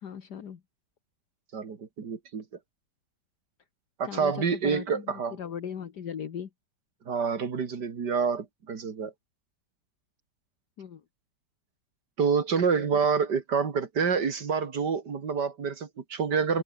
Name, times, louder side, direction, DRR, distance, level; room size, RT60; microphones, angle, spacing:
voice 1, 0.0-0.6 4.1-6.5 10.8-11.0, left 8 dB, 65° left, 2.0 m, -38 dB
voice 2, 1.5-2.4 4.0-5.4 7.1-9.1 12.2-16.6, right 5 dB, 70° right, 2.7 m, -27 dB
open air
omnidirectional pair, 1.9 m